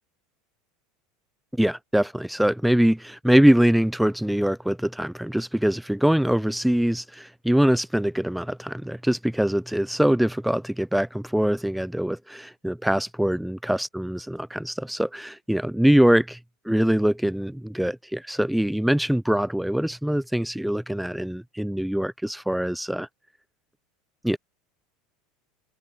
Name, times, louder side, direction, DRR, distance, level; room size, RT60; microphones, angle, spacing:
voice 1, 1.6-16.4 16.6-23.1 24.2-24.4, equal, ahead, 2.1 m, -23 dB
open air
supercardioid pair, 105°, 0 cm